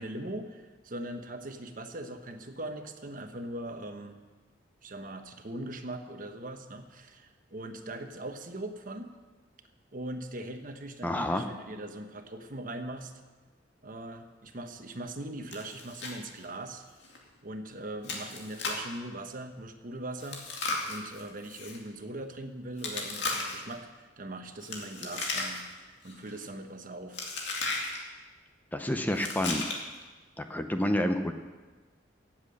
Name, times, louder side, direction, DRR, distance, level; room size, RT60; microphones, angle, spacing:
voice 1, 0.0-4.2 4.8-9.1 9.9-13.1 13.8-16.8 17.4-20.4 20.9-25.6 26.0-27.2, right 1 dB, 45° right, 6 dB, 1.1 m, -40 dB
voice 2, 11.0-11.4 28.7-29.6 30.4-31.3, left 1 dB, 10° left, 6 dB, 0.6 m, -29 dB
Chewing mastication, 15.5-16.2 16.4-16.5 17.0-17.2 18.0-18.9 20.2-21.8 22.8-23.7 24.6-25.8 26.1-26.4 27.1-28.0 29.1-30.0, left 3 dB, 65° left, 2.3 m, -35 dB
17.0 x 7.5 x 6.5 m, 1.3 s
head